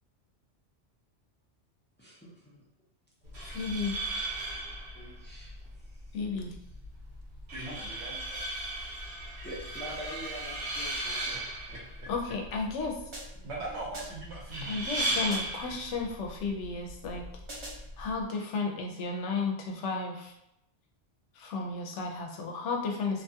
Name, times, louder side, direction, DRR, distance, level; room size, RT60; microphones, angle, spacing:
voice 1, 2.0-2.6 3.3-3.4 4.9-5.6 5.9-6.0 9.4-11.4, equal, 15° left, -6 dB, 0.4 m, -44 dB
sound 1, 3.2-18.2, right 1 dB, 55° right, 1.2 m, -37 dB
voice 2, 3.4-4.0 6.1-6.6 12.1-13.0 14.6-17.2 18.0-20.3 21.3-23.2, left 4 dB, 85° left, 1 dB, 0.9 m, -33 dB
voice 3, 7.5-8.4 11.7-12.1 13.4-15.3 15.7-15.8, right 2 dB, 75° right, -3 dB, 1.1 m, -41 dB
sound 2, 13.1-13.6 13.9-14.4 15.3-15.7 17.5-18.0, right 1 dB, 30° right, 0.7 m, -44 dB
2.6 x 2.3 x 2.7 m, 0.81 s
omnidirectional pair, 1.2 m